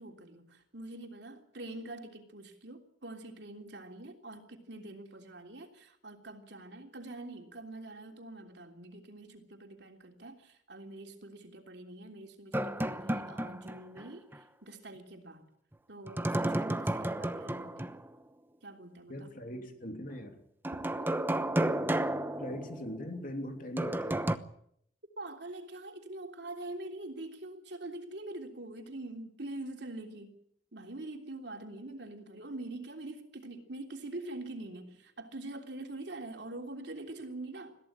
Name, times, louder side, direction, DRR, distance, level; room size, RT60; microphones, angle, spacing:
voice 1, 0.0-15.5 15.9-17.9 18.6-19.3 20.9-21.1 25.2-30.3 30.7-37.8, right 2 dB, 65° right, 3 dB, 3.3 m, -44 dB
sound 1, 12.5-14.0 14.3-14.4 16.1-18.1 20.6-23.1 23.8-24.4, right 1 dB, 10° right, 0.9 m, -32 dB
voice 2, 19.1-20.4 22.4-24.3, equal, 45° left, 5 dB, 3.1 m, -41 dB
22.0 x 15.0 x 8.9 m, 0.71 s
head